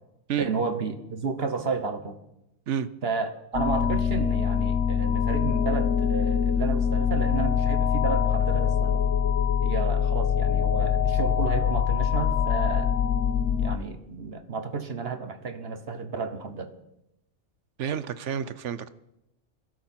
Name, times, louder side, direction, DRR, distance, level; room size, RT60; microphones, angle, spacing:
voice 1, 0.4-2.2 3.0-9.1 9.6-13.0 13.6-16.7, right 4 dB, 50° right, 1.3 m, -32 dB
sound 1, 3.5-13.8, left 7 dB, 65° left, 1.1 m, -24 dB
voice 2, 17.8-18.9, right 8 dB, 65° right, 1.0 m, -29 dB
21.5 x 12.5 x 4.4 m
omnidirectional pair, 1.4 m